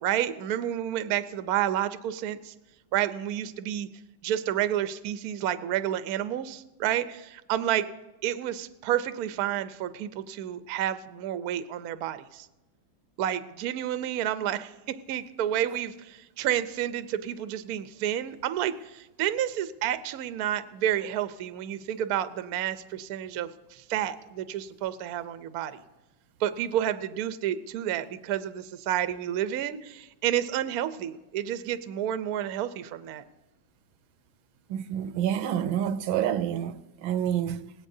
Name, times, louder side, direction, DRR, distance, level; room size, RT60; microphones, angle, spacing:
voice 1, 0.0-2.5 2.9-3.9 4.2-7.9 8.2-12.5 13.2-14.7 15.1-25.8 26.4-33.2, right 11 dB, 65° right, 1.0 m, -30 dB
voice 2, 34.7-37.7, right 10 dB, 85° right, 1.4 m, -28 dB
19.5 x 17.0 x 2.7 m
omnidirectional pair, 2.2 m